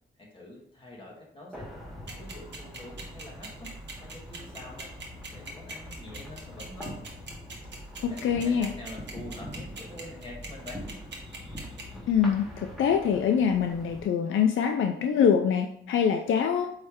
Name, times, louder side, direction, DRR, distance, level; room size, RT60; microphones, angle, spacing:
voice 1, 0.2-1.7 2.2-3.7 4.0-4.9 5.3-7.0 7.7-10.8, left 1 dB, 25° left, -4 dB, 1.7 m, -45 dB
sound 1, 1.5-14.0, equal, ahead, 1.8 m, -43 dB
sound 2, 2.1-11.8, right 4 dB, 65° right, 1.5 m, -41 dB
voice 2, 8.0-8.7 12.1-16.7, left 7 dB, 90° left, 4 dB, 0.5 m, -24 dB
8.7 x 3.3 x 3.6 m, 0.69 s
wide cardioid pair, 120°, 20 cm